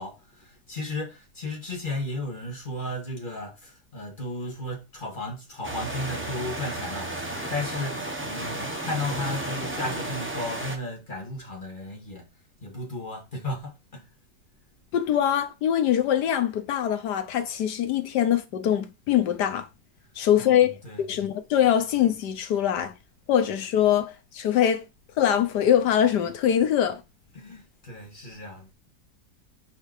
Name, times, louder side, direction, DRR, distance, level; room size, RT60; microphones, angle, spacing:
voice 1, 0.0-12.3 12.6-14.1 20.4-21.0 27.3-28.7, left 2 dB, 30° left, 2.1 m, -34 dB
sound 1, 5.6-10.8, right 1 dB, 10° right, 0.9 m, -33 dB
voice 2, 14.9-19.7 20.2-22.9 23.3-24.8 25.2-27.0, left 10 dB, 80° left, 1.5 m, -23 dB
5.0 x 4.7 x 4.8 m
omnidirectional pair, 1.8 m